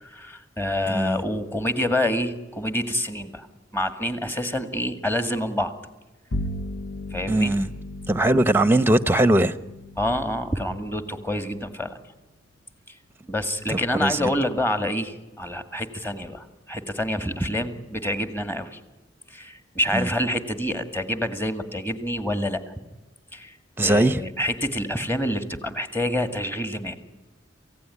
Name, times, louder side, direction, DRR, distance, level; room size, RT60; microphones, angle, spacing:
voice 1, 0.0-3.5 3.7-5.7 7.1-7.6 10.0-12.0 12.9-13.0 13.3-18.8 19.3-22.6 23.3-23.6 23.8-27.0, left 1 dB, 10° left, 2.0 m, -27 dB
voice 2, 0.9-1.2 7.3-7.7 8.1-9.5 13.7-14.3 19.9-20.1 23.8-24.2, right 1 dB, 10° right, 0.9 m, -20 dB
Bowed string instrument, 6.3-12.0, left 1 dB, 65° left, 1.0 m, -36 dB
27.5 x 16.5 x 9.9 m
head